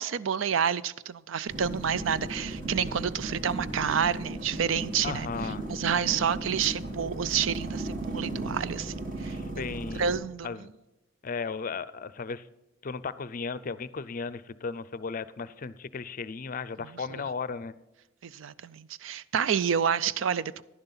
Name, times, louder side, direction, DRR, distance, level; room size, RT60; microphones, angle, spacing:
voice 1, 0.0-5.3 5.7-9.7 10.0-10.5 17.1-17.2 18.2-20.6, right 7 dB, 75° right, 0.4 m, -29 dB
sound 1, 1.5-10.2, right 1 dB, 40° right, 2.0 m, -36 dB
voice 2, 5.0-5.7 9.2-10.1 10.4-10.7 11.2-12.5 12.8-17.7, left 5 dB, 45° left, 0.5 m, -35 dB
11.0 x 10.5 x 4.0 m
head